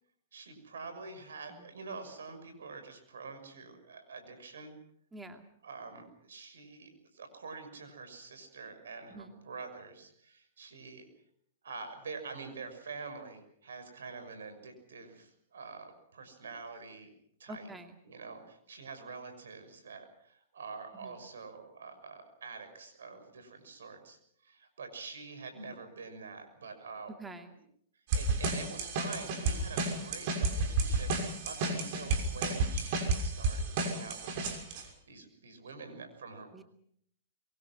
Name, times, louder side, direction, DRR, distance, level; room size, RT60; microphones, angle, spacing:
voice 1, 0.3-4.7 5.6-11.1 11.6-17.1 17.4-17.7 18.0-27.1 28.1-36.5, right 4 dB, 80° right, 8 dB, 6.2 m, -46 dB
voice 2, 5.1-5.4 9.1-9.4 17.5-18.0 20.9-21.2 27.2-27.5 36.5-36.6, right 1 dB, 10° right, 6 dB, 2.4 m, -46 dB
sound 1, 28.1-34.8, right 3 dB, 55° right, 6.3 m, -32 dB
24.5 x 23.0 x 6.2 m, 0.67 s
hypercardioid pair, 120°, 0 cm